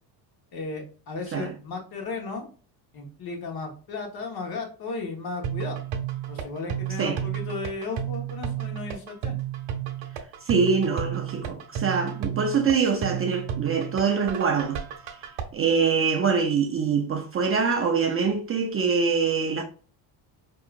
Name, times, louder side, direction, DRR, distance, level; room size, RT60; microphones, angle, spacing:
voice 1, 0.5-2.5 2.9-5.8 6.3-9.4, left 3 dB, 50° left, 1.3 m, -35 dB
sound 1, 5.4-15.4, right 10 dB, 70° right, 0.9 m, -32 dB
voice 2, 10.4-14.8 15.5-19.6, right 5 dB, 30° right, 0.5 m, -24 dB
4.7 x 2.8 x 2.4 m
cardioid pair, 110°, 47 cm